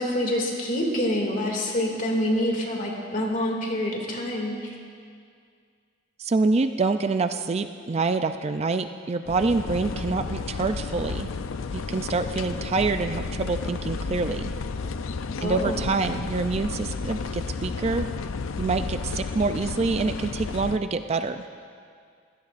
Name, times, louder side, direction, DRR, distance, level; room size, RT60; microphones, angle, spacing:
voice 1, 0.0-4.7 15.4-15.9, left 1 dB, 40° left, 0 dB, 2.4 m, -26 dB
voice 2, 6.2-11.3 11.7-14.5 15.4-18.1 18.6-21.4, right 3 dB, 30° right, 9 dB, 0.3 m, -26 dB
sound 1, 9.3-20.8, left 4 dB, 75° left, 0.5 m, -32 dB
24.5 x 16.5 x 2.5 m, 2.2 s
head